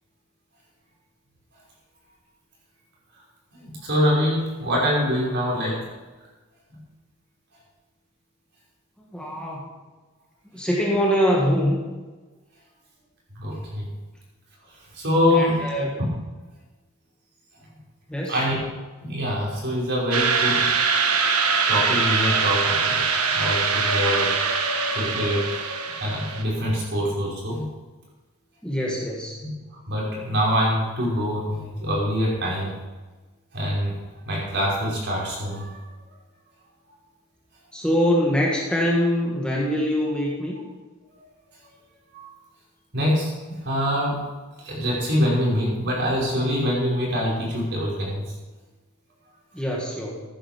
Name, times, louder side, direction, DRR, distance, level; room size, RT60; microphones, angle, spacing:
voice 1, 3.5-5.9 13.4-13.9 14.9-15.9 18.3-18.6 19.0-20.7 21.7-24.3 24.9-25.5 25.9-27.6 29.4-29.5 29.9-32.7 33.5-33.9 34.3-35.8 42.1-42.3 42.9-44.2 44.6-48.2, equal, 50° right, -4 dB, 5.6 m, -24 dB
voice 2, 9.1-9.7 10.5-11.8 15.3-15.9 18.1-18.4 28.6-29.4 37.7-40.6 49.5-50.2, equal, 5° left, -3 dB, 1.8 m, -23 dB
sound 1, 20.1-26.4, right 5 dB, 85° right, 1.4 m, -23 dB
15.0 x 10.0 x 5.3 m, 1.3 s
head